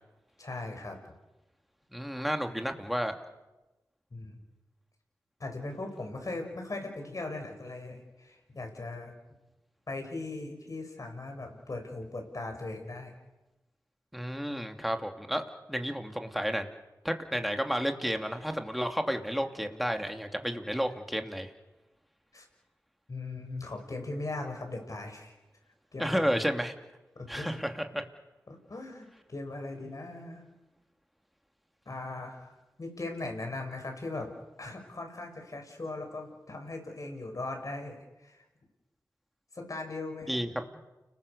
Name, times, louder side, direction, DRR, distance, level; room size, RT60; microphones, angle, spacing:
voice 1, 0.4-1.0 4.1-4.4 5.4-9.1 9.9-13.1 22.3-22.5 23.1-25.3 25.9-26.5 27.2-27.6 28.5-30.4 31.9-34.3 34.6-38.5 39.5-40.4, left 2 dB, 55° left, 4 dB, 7.1 m, -39 dB
voice 2, 1.9-3.1 14.1-15.4 15.7-16.7 17.0-21.5 26.0-26.7 27.3-28.0 40.3-40.6, equal, ahead, 5 dB, 2.9 m, -31 dB
30.0 x 20.5 x 7.1 m, 1.0 s
cardioid pair, 40°, 7 cm